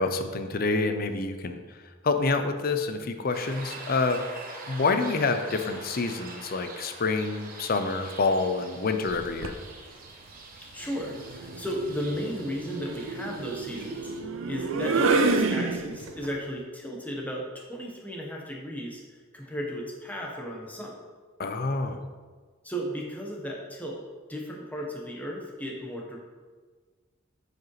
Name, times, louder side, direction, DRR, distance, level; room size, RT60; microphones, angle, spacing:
voice 1, 0.0-1.6 2.0-4.2 4.7-9.5 21.4-22.0, left 3 dB, 45° left, 8 dB, 0.6 m, -27 dB
sound 1, 3.3-14.2, right 3 dB, 45° right, 1.1 m, -44 dB
sound 2, 9.1-9.6 11.0-16.3, right 3 dB, 75° right, 0.5 m, -29 dB
voice 2, 10.7-21.0 22.6-24.0 24.3-26.2, equal, 10° left, -2 dB, 1.1 m, -35 dB
9.1 x 5.1 x 3.2 m, 1.5 s
head